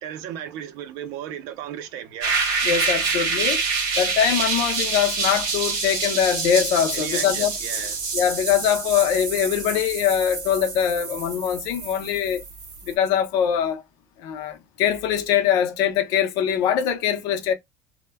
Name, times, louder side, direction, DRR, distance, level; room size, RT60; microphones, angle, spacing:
voice 1, 0.0-2.4 6.9-8.0, right 10 dB, 85° right, 0.4 m, -35 dB
sound 1, 2.2-12.9, right 4 dB, 65° right, 0.9 m, -27 dB
voice 2, 2.6-3.6 4.0-7.5 8.1-12.4 12.9-13.8 14.2-17.5, left 9 dB, 70° left, 0.5 m, -22 dB
2.1 x 2.1 x 3.3 m
cardioid pair, 180°, 7 cm